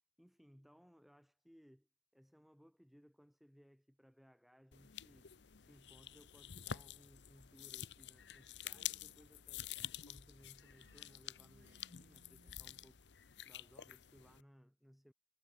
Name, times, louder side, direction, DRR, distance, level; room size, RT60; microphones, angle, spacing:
voice 1, 0.2-5.3 5.6-9.7 10.0-15.1, equal, ahead, 3.6 m, -65 dB
sound 1, 4.7-14.4, left 10 dB, 75° left, 0.8 m, -49 dB
Female speech woman speaking, 8.6-9.3 10.7-13.0, right 1 dB, 75° right, 2.6 m, -69 dB
head